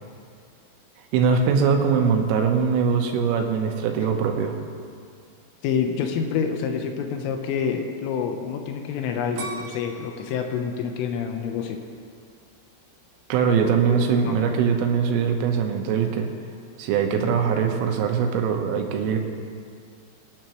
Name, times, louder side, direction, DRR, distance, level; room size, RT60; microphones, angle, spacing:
voice 1, 1.1-4.6 13.3-16.3 16.8-19.2, right 6 dB, 85° right, 4 dB, 3.6 m, -22 dB
voice 2, 5.6-11.8 13.6-14.0 14.3-14.4, left 7 dB, 85° left, 4 dB, 3.5 m, -27 dB
sound 1, 9.4-12.3 12.8-13.3, right 2 dB, 55° right, 2.9 m, -39 dB
23.5 x 10.0 x 3.1 m, 2.2 s
omnidirectional pair, 5.7 m